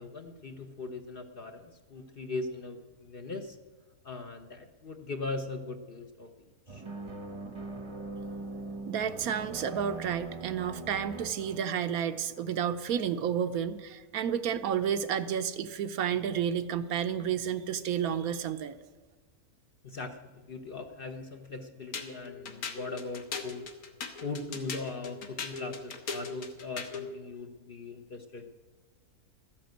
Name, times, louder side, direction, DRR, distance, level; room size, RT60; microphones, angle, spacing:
voice 1, 0.0-3.6 4.0-6.8 19.8-23.7 24.2-28.5, left 3 dB, 45° left, 6 dB, 0.8 m, -40 dB
sound 1, 6.7-12.4, right 3 dB, 25° right, 0.8 m, -41 dB
voice 2, 8.9-18.8, right 8 dB, 75° right, 10 dB, 1.1 m, -31 dB
sound 2, 21.9-27.1, left 5 dB, 70° left, 1.7 m, -39 dB
13.5 x 10.5 x 7.8 m, 1.3 s
omnidirectional pair, 1.6 m